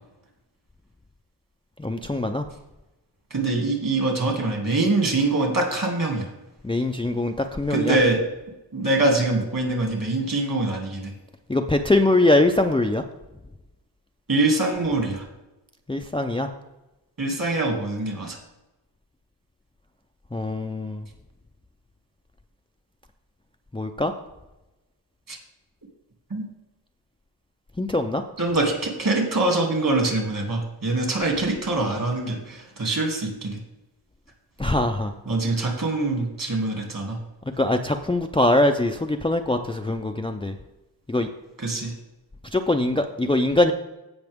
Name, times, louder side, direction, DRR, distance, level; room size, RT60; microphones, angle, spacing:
voice 1, 1.8-2.4 6.6-8.0 11.5-13.0 15.9-16.5 20.3-21.0 23.7-24.1 27.8-28.2 34.6-35.1 37.6-40.5 41.1-41.3 42.5-43.7, left 2 dB, 15° left, 5 dB, 0.5 m, -22 dB
voice 2, 3.3-6.3 7.7-8.2 8.7-11.1 14.3-15.3 17.2-18.4 25.3-25.4 26.3-26.4 28.4-33.6 35.3-37.2 41.6-41.9, right 2 dB, 55° right, 1 dB, 2.6 m, -24 dB
16.0 x 5.8 x 3.6 m, 0.99 s
wide cardioid pair, 135°, 40 cm